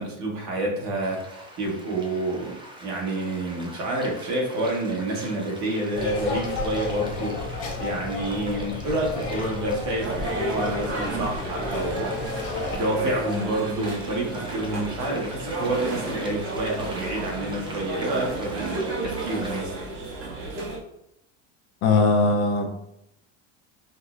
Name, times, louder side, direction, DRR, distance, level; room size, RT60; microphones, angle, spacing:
voice 1, 0.0-12.1 12.7-19.7, right 1 dB, 50° right, -1 dB, 1.3 m, -28 dB
sound 1, 1.0-19.6, right 1 dB, 15° right, 0.5 m, -43 dB
sound 2, 5.9-12.8, left 3 dB, 75° left, 0.9 m, -32 dB
sound 3, 10.0-20.8, right 2 dB, 85° right, 1.4 m, -32 dB
voice 2, 21.8-22.7, left 3 dB, 45° left, 2 dB, 0.6 m, -20 dB
5.3 x 2.0 x 2.4 m, 0.80 s
supercardioid pair, 110°, 36 cm